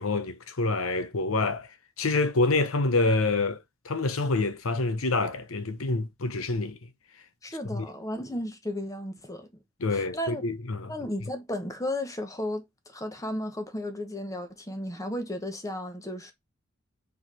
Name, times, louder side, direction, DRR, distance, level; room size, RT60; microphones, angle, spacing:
voice 1, 0.0-1.7 2.0-6.8 7.7-7.9 9.8-10.9, left 3 dB, 80° left, 0.8 m, -27 dB
voice 2, 7.4-9.5 9.9-10.4 10.9-16.3, left 1 dB, 15° left, 1.1 m, -34 dB
4.8 x 4.7 x 4.1 m
head